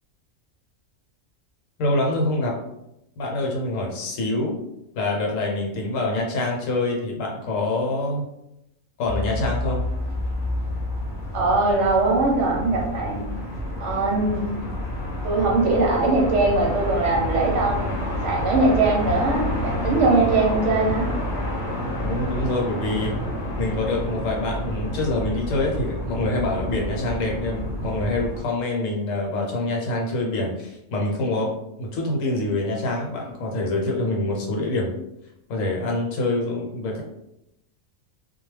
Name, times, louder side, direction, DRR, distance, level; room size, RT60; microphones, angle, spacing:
voice 1, 1.8-2.6 3.2-4.6 5.0-8.2 9.0-9.8 22.0-23.1 23.6-31.5 31.8-35.0 35.5-37.0, left 2 dB, 70° left, -1 dB, 1.1 m, -25 dB
sound 1, 9.0-28.4, left 1 dB, 50° left, 0.8 m, -29 dB
voice 2, 11.3-13.2 13.8-14.4 15.2-21.1, right 3 dB, 65° right, -1 dB, 0.9 m, -21 dB
2.3 x 2.1 x 3.1 m, 0.84 s
omnidirectional pair, 1.4 m